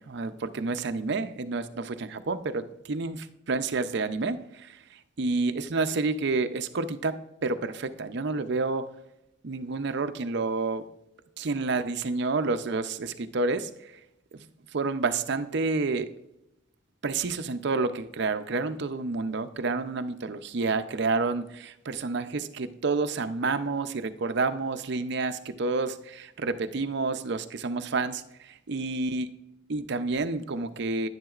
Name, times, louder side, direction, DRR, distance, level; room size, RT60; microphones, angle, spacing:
voice 1, 0.1-4.8 5.2-7.2 7.4-8.9 9.4-10.8 11.4-13.7 14.3-14.5 14.7-16.1 17.0-29.3 29.7-31.1, right 3 dB, 60° right, 10 dB, 0.6 m, -29 dB
10.5 x 10.5 x 2.4 m, 0.86 s
head